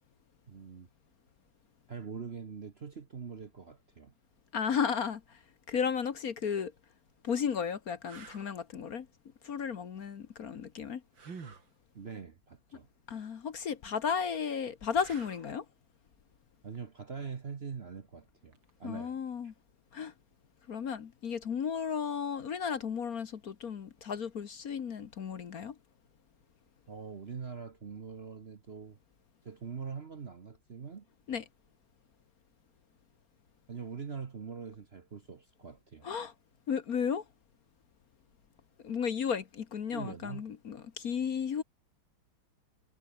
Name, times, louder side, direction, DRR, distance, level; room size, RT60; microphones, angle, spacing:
voice 1, 0.5-0.9 1.9-4.1 11.9-12.9 16.6-19.2 26.9-29.0 29.4-31.1 33.7-36.1 39.9-40.5, right 6 dB, 40° right, 1.1 m, -43 dB
voice 2, 4.5-5.4 5.7-6.7 7.2-9.1 9.4-11.0 13.1-15.6 18.8-19.5 19.9-20.1 20.7-25.7 31.3-31.4 36.0-36.3 36.7-37.2 38.8-41.6, left 7 dB, 50° left, 1.5 m, -34 dB
sound 1, 6.6-6.7 7.3-7.4 8.0-8.5 11.1-11.7 14.9-15.6 18.5-18.7, right 5 dB, 70° right, 3.6 m, -48 dB
omnidirectional pair, 2.2 m